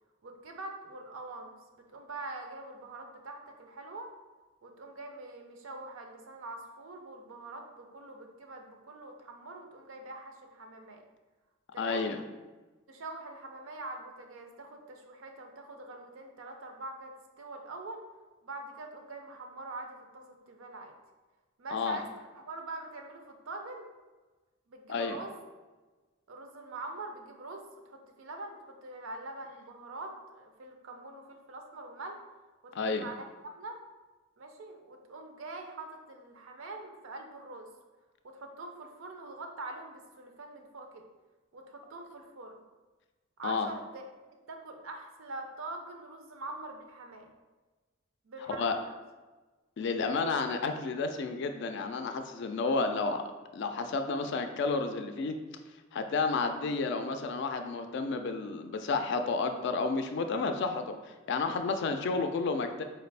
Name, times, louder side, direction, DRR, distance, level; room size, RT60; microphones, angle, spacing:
voice 1, 0.2-4.1 4.6-11.0 11.7-12.1 12.9-18.0 18.4-21.0 21.6-23.9 24.7-25.4 26.3-32.2 32.6-33.8 34.4-37.7 38.2-41.0 41.5-42.6 43.4-44.0 44.5-47.3 48.2-48.9, right 2 dB, 85° right, 4 dB, 0.5 m, -44 dB
voice 2, 11.8-12.2 21.7-22.0 24.9-25.2 32.7-33.1 43.4-43.7 48.5-48.7 49.8-53.2 53.5-55.4 55.9-62.8, left 4 dB, 60° left, 7 dB, 0.3 m, -31 dB
4.4 x 2.4 x 3.3 m, 1.2 s
head